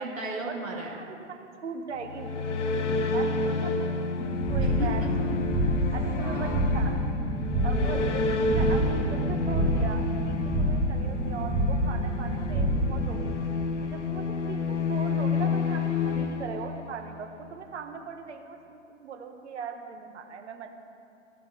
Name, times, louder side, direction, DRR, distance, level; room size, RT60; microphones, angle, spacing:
voice 1, 0.0-1.0 4.6-5.1 6.2-6.6, right 1 dB, 85° right, -3 dB, 2.0 m, -35 dB
voice 2, 0.9-2.3 3.1-3.4 3.6-3.8 4.5-5.4 5.9-7.0 7.6-13.4 13.8-20.7, right 6 dB, 60° right, 5 dB, 1.3 m, -39 dB
sound 1, 1.9-17.2, left 3 dB, 65° left, 0.9 m, -30 dB
sound 2, 4.2-13.2, equal, 5° right, 1.3 m, -28 dB
14.5 x 5.4 x 7.1 m, 2.6 s
figure-of-eight pair, 110°, 39 cm